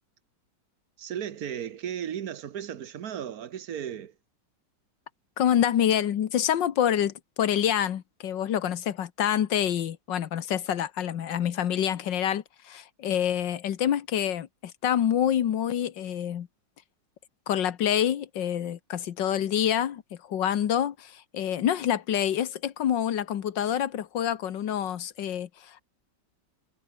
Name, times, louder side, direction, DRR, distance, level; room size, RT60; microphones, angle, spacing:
voice 1, 1.0-4.1, right 9 dB, 60° right, 1.4 m, -35 dB
voice 2, 5.4-16.5 17.5-25.8, left 10 dB, 85° left, 1.8 m, -27 dB
omnidirectional pair, 1.9 m